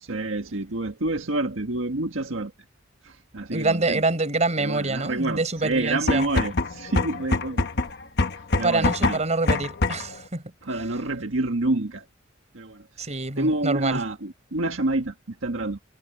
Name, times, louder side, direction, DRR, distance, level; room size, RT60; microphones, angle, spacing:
voice 1, 0.0-2.5 3.0-4.0 4.6-7.7 8.6-9.2 10.6-12.0 12.5-12.8 13.4-15.8, right 2 dB, 80° right, 1.6 m, -28 dB
voice 2, 3.5-6.3 8.6-10.4 13.0-14.0, right 3 dB, 35° right, 4.7 m, -26 dB
sound 1, 5.9-10.2, left 2 dB, 55° left, 1.2 m, -25 dB
head